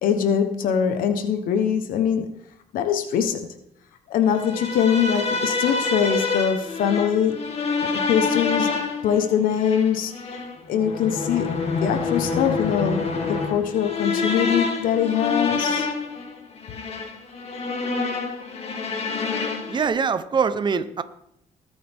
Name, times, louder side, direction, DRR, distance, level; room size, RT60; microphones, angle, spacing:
voice 1, 0.0-2.3 2.7-3.5 4.1-7.4 7.9-8.7 9.0-10.1 10.7-15.9, left 8 dB, 80° left, 7 dB, 1.2 m, -23 dB
sound 1, 4.3-19.9, left 4 dB, 45° left, 2.4 m, -27 dB
voice 2, 19.7-21.0, right 6 dB, 35° right, 12 dB, 0.9 m, -23 dB
20.5 x 8.6 x 3.6 m, 0.77 s
cardioid pair, 110°, 14 cm